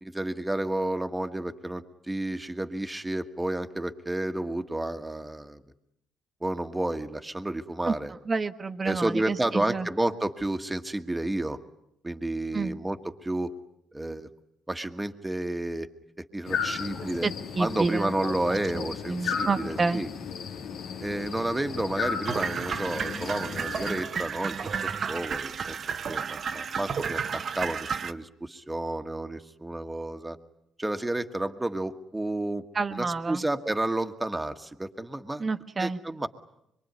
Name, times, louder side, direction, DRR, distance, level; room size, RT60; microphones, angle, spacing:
voice 1, 0.0-5.6 6.4-8.1 8.8-11.6 12.0-13.5 13.9-14.3 14.7-15.9 16.3-17.3 17.6-20.1 21.0-25.8 26.1-30.4 30.8-32.6 32.9-35.4 35.8-36.3, right 1 dB, 10° right, 7 dB, 1.6 m, -31 dB
voice 2, 8.2-9.9 12.5-12.8 17.2-18.1 19.1-20.0 32.7-33.4 35.4-36.0, right 4 dB, 35° right, 7 dB, 1.4 m, -29 dB
sound 1, 16.5-24.0, left 6 dB, 80° left, 2.1 m, -35 dB
sound 2, 22.2-28.1, right 6 dB, 50° right, 1.0 m, -32 dB
25.0 x 23.0 x 9.5 m, 0.79 s
cardioid pair, 90°, 0 cm